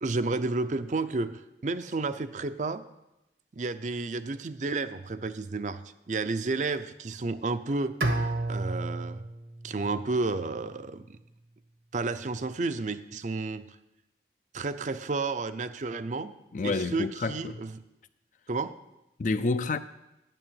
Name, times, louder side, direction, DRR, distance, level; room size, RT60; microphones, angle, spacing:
voice 1, 0.0-2.8 3.5-5.8 6.1-8.0 8.5-9.2 9.6-11.2 11.9-13.8 14.5-16.3 16.6-17.7 18.5-18.8, right 3 dB, 45° right, 0.5 m, -31 dB
Bowed string instrument, 8.0-11.0, right 2 dB, 75° right, 1.2 m, -32 dB
voice 2, 16.5-17.6 19.2-19.8, left 3 dB, 45° left, 0.4 m, -29 dB
9.0 x 6.9 x 8.7 m
head